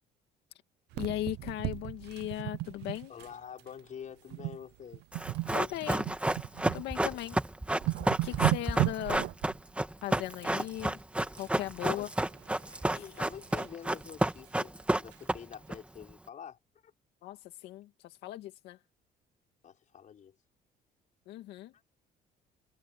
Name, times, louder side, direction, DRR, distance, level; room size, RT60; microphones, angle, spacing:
voice 1, 0.9-3.1 5.5-6.1 6.7-7.4 8.2-9.3 10.0-11.0 11.4-12.1 17.2-18.8 21.3-21.7, left 14 dB, 85° left, 2.2 m, -38 dB
sound 1, 0.9-3.3 3.6-3.8 4.3-4.6 4.9-6.8 7.3-7.4 7.7-9.5 11.4-11.9 12.3-13.7 14.2-14.3 14.6-14.7 15.1-15.2, right 19 dB, 85° right, 0.6 m, -35 dB
voice 2, 3.1-5.0 7.0-7.2 11.8-12.1 12.9-16.9 19.6-20.3, left 8 dB, 50° left, 5.2 m, -47 dB
Run, 5.1-15.7 16.0-16.1, right 1 dB, 5° right, 2.0 m, -30 dB
cardioid pair, 110°, 17 cm